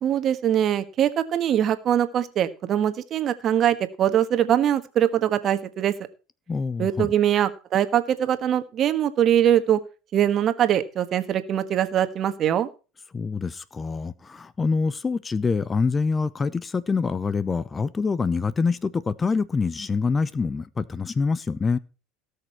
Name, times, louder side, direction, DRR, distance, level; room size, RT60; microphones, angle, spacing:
voice 1, 0.0-5.9 6.8-9.8 10.1-12.7, right 10 dB, 45° right, 1.5 m, -22 dB
voice 2, 6.5-7.1 13.1-21.8, left 4 dB, 25° left, 0.7 m, -25 dB
17.5 x 6.6 x 4.5 m
hypercardioid pair, 75°, 0 cm